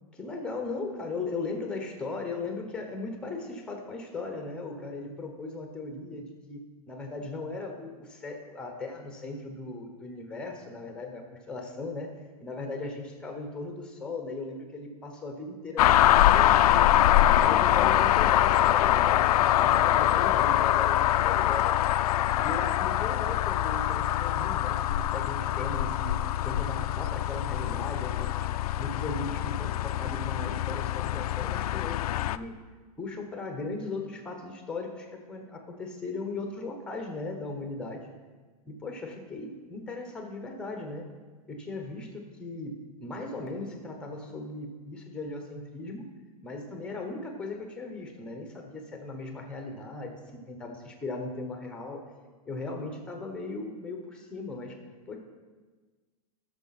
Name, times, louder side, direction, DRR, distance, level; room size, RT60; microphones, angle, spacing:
voice 1, 0.1-11.2 11.5-12.1 12.4-16.9 17.3-21.7 22.3-26.2 26.4-28.5 28.8-32.5 33.0-38.1 38.7-41.1 41.5-46.0 46.4-50.2 50.5-52.0 52.5-54.8 55.1-55.2, left 3 dB, 5° left, 3 dB, 1.0 m, -38 dB
sound 1, 15.8-32.4, left 12 dB, 75° left, 0.4 m, -24 dB
12.5 x 6.6 x 4.2 m, 1.3 s
supercardioid pair, 165°, 20 cm